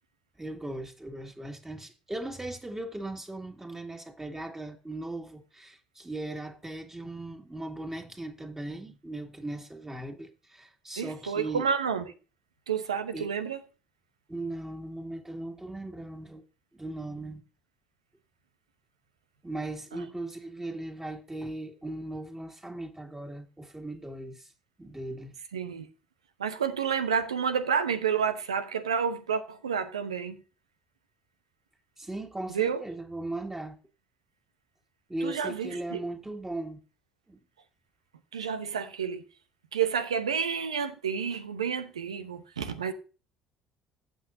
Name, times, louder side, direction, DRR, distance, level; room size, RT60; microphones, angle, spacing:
voice 1, 0.4-11.7 13.1-13.3 14.3-16.4 16.7-17.4 19.4-24.5 24.8-25.4 32.0-33.8 35.1-36.8 37.3-37.4, right 2 dB, 15° right, 2.3 m, -38 dB
voice 2, 11.0-12.1 12.7-13.6 25.5-25.9 26.4-30.4 32.5-32.8 35.2-36.0 38.3-39.2 39.7-42.9, right 7 dB, 90° right, 0.8 m, -30 dB
15.5 x 6.3 x 2.6 m
hypercardioid pair, 55°, 3 cm